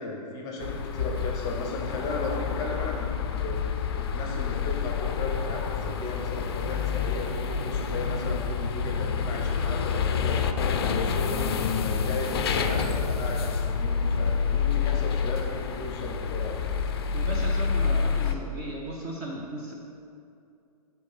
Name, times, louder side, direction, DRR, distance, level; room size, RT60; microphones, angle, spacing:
voice 1, 0.0-3.6 3.9-16.7, left 2 dB, 20° left, 0 dB, 0.7 m, -35 dB
sound 1, 0.6-18.3, left 6 dB, 40° left, 0.4 m, -28 dB
voice 2, 17.1-19.7, right 1 dB, 20° right, -2 dB, 0.5 m, -36 dB
4.9 x 3.8 x 5.8 m, 2.6 s
figure-of-eight pair, 120°, 20 cm